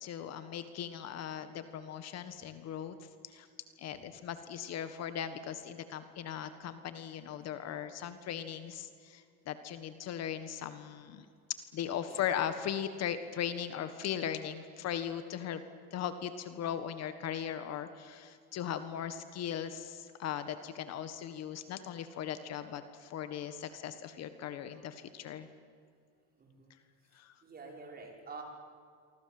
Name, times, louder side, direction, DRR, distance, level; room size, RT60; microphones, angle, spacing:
voice 1, 0.0-3.5 3.8-11.3 11.7-15.6 15.9-25.5 27.1-27.3, left 9 dB, 50° left, 10 dB, 1.6 m, -38 dB
voice 2, 26.4-26.7 27.4-28.4, right 4 dB, 25° right, 1 dB, 5.6 m, -48 dB
27.5 x 24.0 x 7.8 m, 2.2 s
cardioid pair, 125°, 33 cm